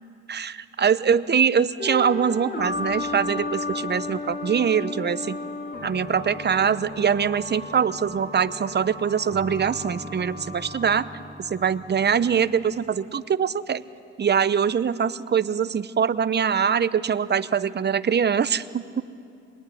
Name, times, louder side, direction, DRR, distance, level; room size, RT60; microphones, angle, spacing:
voice 1, 0.3-5.4 5.8-11.0 11.4-13.8 14.2-19.0, right 7 dB, 35° right, 14 dB, 0.8 m, -23 dB
sound 1, 1.8-12.8, left 2 dB, 30° left, 3.2 m, -34 dB
25.5 x 21.5 x 9.9 m, 2.6 s
cardioid pair, 90°, 30 cm